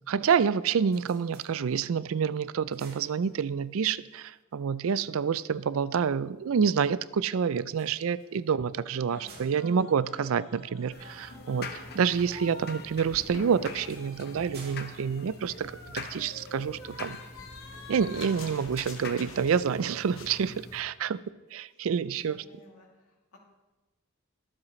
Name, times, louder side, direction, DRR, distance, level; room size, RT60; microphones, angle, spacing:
voice 1, 0.1-17.2 17.9-21.2 21.5-22.4, right 6 dB, 70° right, 18 dB, 0.4 m, -28 dB
sound 1, 0.8-2.1 2.5-3.8 7.6-11.1 13.1-16.2, right 4 dB, 45° right, 2.3 m, -55 dB
voice 2, 9.1-9.8 22.2-23.4, left 1 dB, 90° left, -2 dB, 2.7 m, -55 dB
sound 2, 9.1-12.9 13.1-19.8 20.1-20.4, left 3 dB, 65° left, 1.4 m, -47 dB
sound 3, 10.9-20.8, left 3 dB, 45° left, 0.9 m, -45 dB
22.0 x 7.5 x 3.2 m, 1.2 s
head